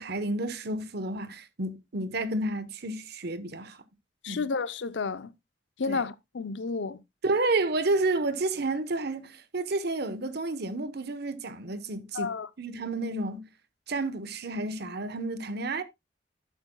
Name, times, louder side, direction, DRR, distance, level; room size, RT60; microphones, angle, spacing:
voice 1, 0.0-3.8 4.3-4.5 5.9-6.0 7.2-12.3 12.6-13.4 13.9-15.8, right 2 dB, 60° right, 1.1 m, -30 dB
voice 2, 4.2-5.3 5.8-7.0 12.1-12.5, left 4 dB, 80° left, 0.6 m, -31 dB
11.5 x 8.5 x 2.3 m
head